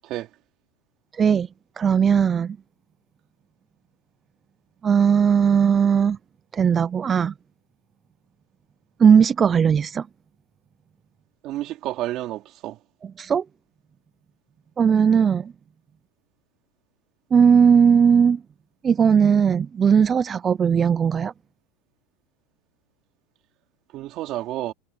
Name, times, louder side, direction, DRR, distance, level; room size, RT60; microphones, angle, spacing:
voice 1, 1.1-1.5 1.8-2.6 4.8-6.2 6.5-7.3 9.0-10.1 13.2-13.4 14.8-15.5 17.3-18.4 18.8-21.3, right 7 dB, 20° right, 0.4 m, -18 dB
voice 2, 11.4-12.8 23.9-24.7, right 15 dB, 40° right, 3.3 m, -30 dB
supercardioid pair, 150°, 0 cm